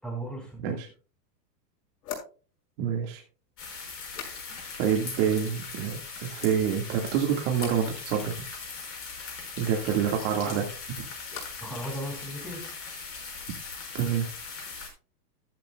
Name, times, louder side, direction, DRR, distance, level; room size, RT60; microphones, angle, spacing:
voice 1, 0.0-0.8 4.5-4.6 10.4-10.6 11.6-12.6, right 1 dB, ahead, 0 dB, 4.9 m, -36 dB
sound 1, 0.8-0.9 2.0-4.9 5.1-5.7 6.1-6.7 7.5-7.9 10.3-11.8 12.0-12.6, left 7 dB, 65° left, 6.4 m, -46 dB
voice 2, 2.8-3.2 4.8-8.3 9.6-10.7 11.0-11.1 13.9-14.3, right 8 dB, 40° right, 1 dB, 2.0 m, -27 dB
sound 2, 3.6-14.9, left 4 dB, 25° left, 5.6 m, -40 dB
13.0 x 12.0 x 2.3 m, 0.36 s
hypercardioid pair, 145°, 50 cm